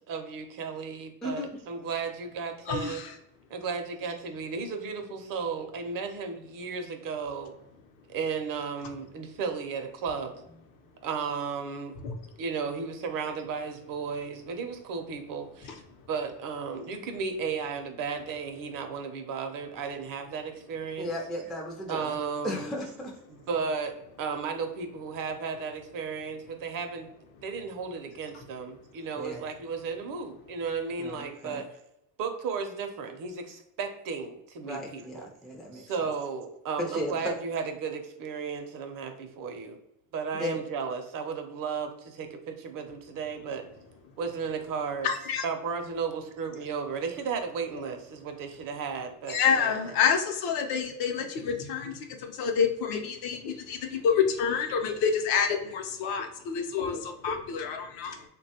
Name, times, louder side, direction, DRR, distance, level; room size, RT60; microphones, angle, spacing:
voice 1, 0.0-3.0 3.5-7.5 8.1-10.3 11.0-12.0 12.4-15.8 16.1-21.1 21.9-22.7 23.3-27.1 27.4-31.7 32.2-35.3 35.7-39.8 40.1-43.6 44.2-45.1 45.4-50.0, right 5 dB, 55° right, 6 dB, 0.6 m, -34 dB
voice 2, 2.7-3.1 12.0-12.1 45.0-45.4 49.3-58.2, left 6 dB, 65° left, 4 dB, 0.7 m, -28 dB
voice 3, 21.0-22.1 22.4-23.1 29.2-29.4 31.0-31.6 34.6-35.9 36.8-37.4 40.3-40.6, left 1 dB, ahead, 0 dB, 0.3 m, -35 dB
2.9 x 2.2 x 2.7 m, 0.81 s
supercardioid pair, 100°, 41 cm